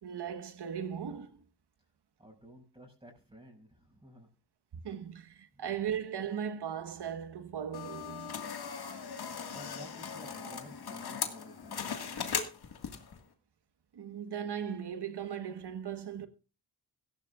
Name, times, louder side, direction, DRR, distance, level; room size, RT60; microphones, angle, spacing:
voice 1, 0.0-1.4 4.8-8.4 13.9-16.3, right 8 dB, 65° right, 1.4 m, -38 dB
voice 2, 2.2-4.3 5.5-5.6 9.5-12.1, equal, 15° right, 6.6 m, -53 dB
sound 1, 7.7-13.2, left 6 dB, 60° left, 1.8 m, -38 dB
17.0 x 14.5 x 2.4 m
cardioid pair, 55°, 44 cm